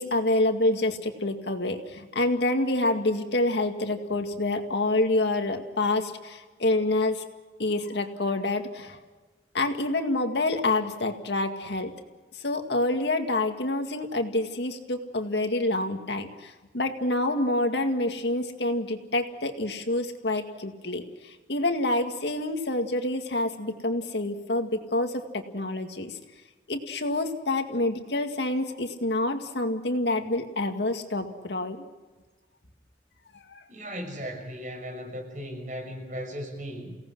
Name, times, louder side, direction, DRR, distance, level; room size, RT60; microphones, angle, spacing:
voice 1, 0.0-7.2 7.6-9.0 9.5-11.9 12.3-26.2 26.7-31.8 33.3-33.6, left 2 dB, 80° left, 6 dB, 2.1 m, -27 dB
voice 2, 33.7-37.0, equal, 45° right, 2 dB, 6.5 m, -37 dB
29.5 x 18.0 x 6.3 m, 1.2 s
head